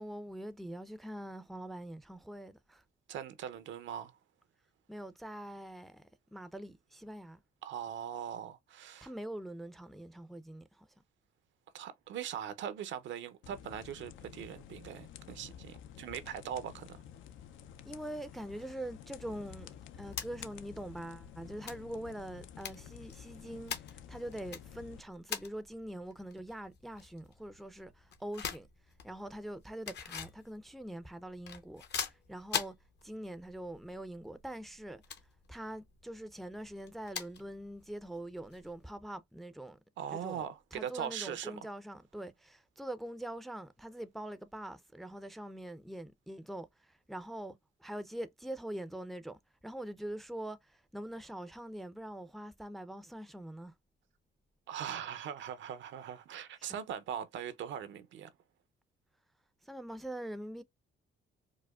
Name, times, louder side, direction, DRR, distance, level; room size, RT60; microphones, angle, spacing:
voice 1, 0.0-2.8 4.9-6.0 6.3-7.4 9.0-10.9 17.8-19.7 20.0-28.7 29.0-32.7 33.0-35.0 35.5-39.8 40.1-53.7 56.6-56.8 59.6-60.6, right 1 dB, ahead, 0.4 m, -44 dB
voice 2, 3.1-4.1 7.6-9.1 11.7-17.0 40.0-41.6 54.7-58.3, right 9 dB, 70° right, 0.6 m, -41 dB
sound 1, 13.4-25.0, left 9 dB, 75° left, 0.4 m, -51 dB
sound 2, 19.4-38.9, left 7 dB, 60° left, 0.8 m, -45 dB
4.8 x 2.1 x 2.3 m
cardioid pair, 90°, 20 cm